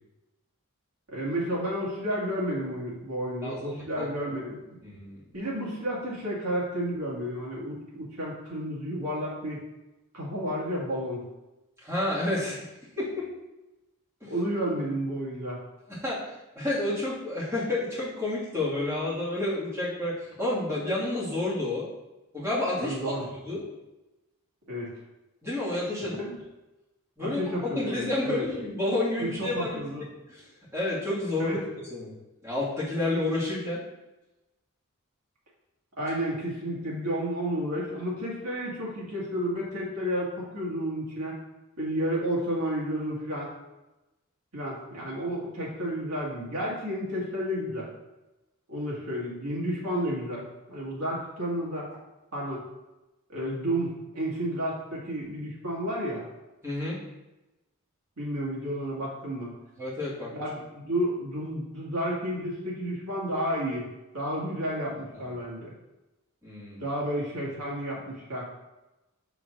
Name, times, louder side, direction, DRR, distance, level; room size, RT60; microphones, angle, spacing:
voice 1, 1.1-4.8 5.3-9.6 10.1-11.2 14.3-15.6 22.8-23.3 24.7-25.0 26.1-26.3 27.2-28.4 29.2-30.1 31.4-31.6 36.0-41.3 41.8-43.5 44.5-47.9 48.7-51.9 52.3-52.6 53.3-56.3 58.2-59.5 60.3-63.9 64.1-65.7 66.8-68.5, equal, 80° right, -5 dB, 1.8 m, -31 dB
voice 2, 3.4-4.1 4.8-5.2 11.8-12.7 13.0-13.3 14.2-14.3 15.9-21.8 22.3-23.1 23.4-23.6 25.4-26.1 27.2-27.4 27.7-29.8 30.3-30.4 30.7-31.6 31.9-32.1 32.4-33.8 56.6-57.0 59.7-60.3 66.4-66.8, left 2 dB, 10° right, -9 dB, 1.8 m, -30 dB
6.5 x 6.0 x 2.5 m, 1.0 s
head